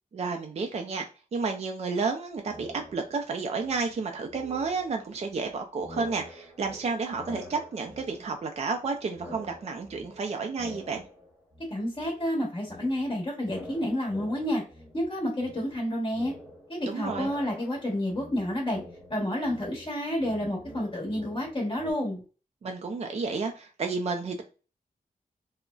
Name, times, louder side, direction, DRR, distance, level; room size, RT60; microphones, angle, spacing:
voice 1, 0.1-1.0 1.3-11.0 16.9-17.3 22.6-24.4, right 4 dB, 45° right, 4 dB, 0.4 m, -31 dB
sound 1, 2.5-3.3 3.6-5.5 5.8-8.9 9.1-11.7 12.0-21.9, left 1 dB, 5° left, 1.2 m, -46 dB
voice 2, 11.7-14.6 14.9-16.3 16.7-18.8 19.1-22.2, left 1 dB, 35° left, -4 dB, 1.1 m, -30 dB
3.7 x 2.1 x 2.2 m, 0.34 s
wide cardioid pair, 170°, 15 cm